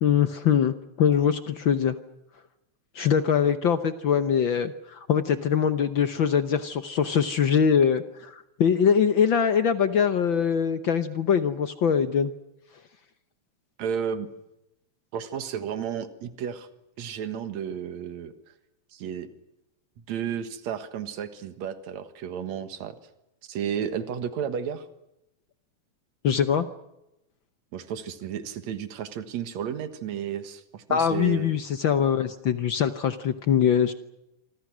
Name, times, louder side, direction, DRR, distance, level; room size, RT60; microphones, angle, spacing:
voice 1, 0.0-2.0 2.9-12.3 26.2-26.7 30.9-33.9, left 7 dB, 65° left, 10 dB, 1.2 m, -23 dB
voice 2, 13.8-14.3 15.1-16.7 17.0-18.3 18.9-19.3 20.0-23.0 23.5-24.9 27.7-31.5, right 8 dB, 70° right, 10 dB, 2.8 m, -32 dB
28.0 x 25.0 x 6.2 m, 0.88 s
omnidirectional pair, 3.4 m